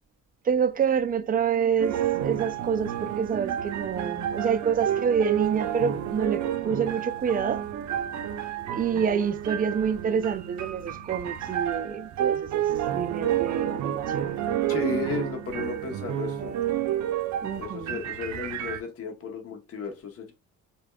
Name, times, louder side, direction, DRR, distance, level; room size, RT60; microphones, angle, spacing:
voice 1, 0.5-7.6 8.4-12.6 12.9-14.4 17.4-18.0, right 7 dB, 30° right, 0.4 m, -27 dB
sound 1, 1.8-18.8, right 11 dB, 70° right, 0.6 m, -30 dB
voice 2, 14.7-16.5 17.6-20.3, left 5 dB, 50° left, 0.9 m, -34 dB
5.0 x 2.3 x 2.2 m
cardioid pair, 90°, 30 cm